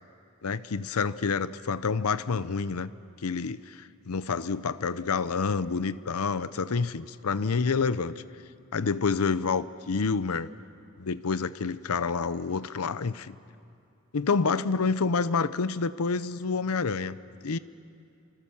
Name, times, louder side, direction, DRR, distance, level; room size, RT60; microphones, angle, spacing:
voice 1, 0.4-2.9 3.2-8.2 8.7-10.5 11.0-13.4 14.1-17.2 17.4-17.6, left 4 dB, 85° left, 15 dB, 0.7 m, -28 dB
27.0 x 26.0 x 7.2 m, 2.6 s
head